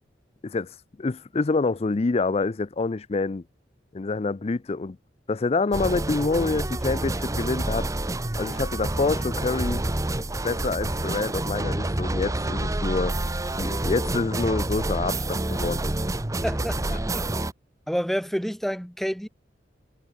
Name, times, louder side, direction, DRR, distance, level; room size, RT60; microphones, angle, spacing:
voice 1, 0.4-3.4 3.9-5.0 5.3-7.9 8.4-9.8 10.4-13.2 13.6-15.8, left 3 dB, 35° left, 0.4 m, -27 dB
sound 1, 5.7-17.5, right 1 dB, 20° right, 0.8 m, -28 dB
voice 2, 16.4-17.2 17.9-19.3, equal, ahead, 2.7 m, -29 dB
head